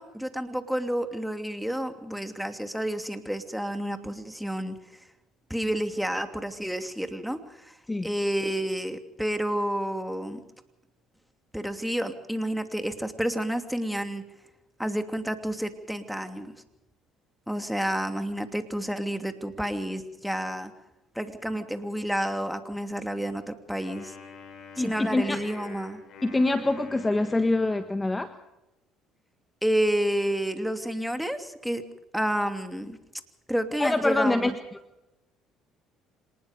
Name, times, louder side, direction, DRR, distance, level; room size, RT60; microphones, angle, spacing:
voice 1, 0.0-5.0 5.5-7.8 8.0-10.4 11.5-14.2 14.8-16.5 17.5-20.7 21.1-24.2 24.8-26.0 29.6-31.8 32.1-33.0 33.5-34.5, equal, ahead, 7 dB, 2.8 m, -30 dB
Wind instrument woodwind instrument, 23.8-28.2, left 4 dB, 60° left, 7.5 m, -46 dB
voice 2, 24.8-25.4 26.2-28.3 33.8-34.5, left 2 dB, 15° left, 9 dB, 1.5 m, -25 dB
26.0 x 19.5 x 5.3 m, 0.94 s
hypercardioid pair, 65°, 0 cm